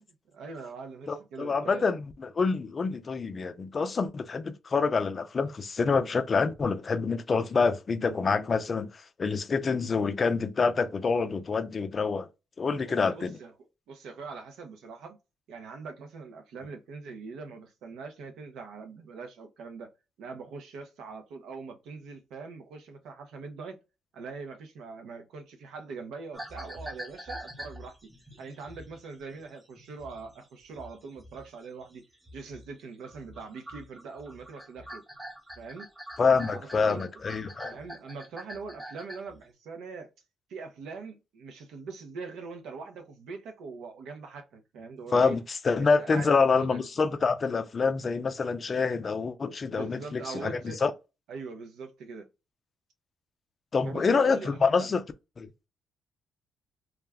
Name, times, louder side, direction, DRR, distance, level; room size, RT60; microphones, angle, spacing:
voice 1, 0.3-1.9 12.8-15.2 15.5-19.9 20.2-23.8 24.1-28.0 28.4-32.0 32.3-35.0 35.6-35.9 36.2-37.1 37.6-40.1 40.5-45.4 45.8-46.8 49.8-50.8 51.3-52.3 53.8-55.0, right 4 dB, 80° right, 0.6 m, -42 dB
voice 2, 1.1-12.3 12.6-13.4 36.2-37.8 45.1-50.9 53.7-55.0 55.4-55.5, left 4 dB, 40° left, 0.4 m, -27 dB
sound 1, 26.3-32.8 33.0-39.4, right 1 dB, 10° right, 0.8 m, -45 dB
2.4 x 2.1 x 3.4 m
cardioid pair, 90°, 0 cm